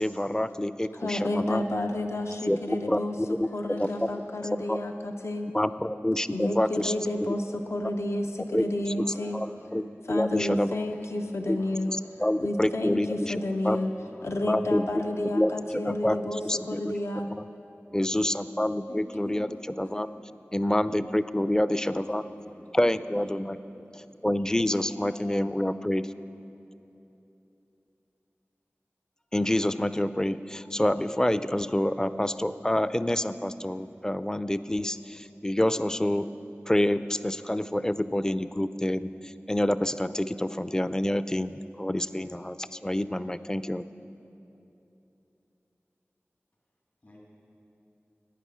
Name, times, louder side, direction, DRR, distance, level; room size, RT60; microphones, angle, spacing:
voice 1, 0.0-1.7 2.5-3.0 3.3-3.5 3.8-4.1 4.7-4.8 5.5-6.9 8.5-8.6 9.3-9.8 10.1-10.7 11.5-11.6 12.2-13.4 13.6-13.8 14.4-14.8 15.2-15.5 15.8-16.9 17.9-20.1 20.5-22.2 22.7-23.6 23.9-26.1 29.3-36.3 36.7-43.9, left 1 dB, 15° left, 13 dB, 0.4 m, -27 dB
voice 2, 0.9-3.2 3.5-5.5 6.3-9.4 10.1-11.9 12.4-13.9 14.2-17.3 18.9-19.4, left 1 dB, 70° left, 4 dB, 0.7 m, -31 dB
voice 3, 3.2-4.0 4.4-4.9 5.6-5.9 6.8-6.9 8.5-8.6 8.9-9.8 10.7-10.9 11.2-11.3 11.6-12.4 13.0-13.1 13.8-14.6 14.9-15.8 16.1-16.5 17.9-18.4 19.0-19.1 19.7-19.9 21.5-21.6 21.9-22.1 22.4-22.7 23.6-24.1 47.0-47.2, equal, 55° left, -4 dB, 2.7 m, -53 dB
15.5 x 9.3 x 6.2 m, 3.0 s
wide cardioid pair, 45°, 5 cm